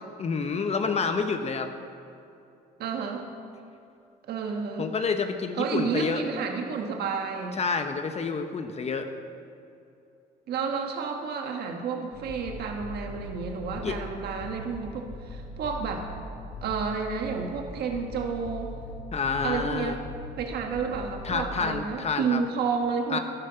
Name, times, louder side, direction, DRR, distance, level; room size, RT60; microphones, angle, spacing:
voice 1, 0.2-1.7 4.8-6.2 7.6-9.1 13.8-14.0 19.1-20.0 21.2-22.4 23.1-23.2, left 5 dB, 40° left, 7 dB, 1.0 m, -28 dB
voice 2, 2.8-3.2 4.3-4.9 5.6-7.6 10.5-16.1 16.6-18.7 19.4-20.0 20.4-23.2, right 5 dB, 70° right, 3 dB, 1.4 m, -31 dB
sound 1, 12.1-21.8, left 2 dB, 85° left, 1.9 m, -41 dB
13.5 x 11.5 x 5.8 m, 2.6 s
cardioid pair, 95°, 17 cm